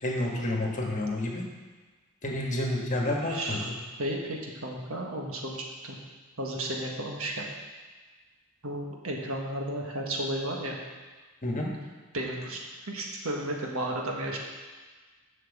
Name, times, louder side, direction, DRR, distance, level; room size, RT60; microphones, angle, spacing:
voice 1, 0.0-1.4 2.2-3.6 11.4-11.7, left 1 dB, 35° left, -1 dB, 1.4 m, -29 dB
voice 2, 3.2-3.7 4.0-6.0 6.4-7.5 8.6-10.8 12.1-14.4, right 1 dB, 65° right, -1 dB, 1.6 m, -33 dB
7.7 x 6.0 x 7.2 m, 1.4 s
head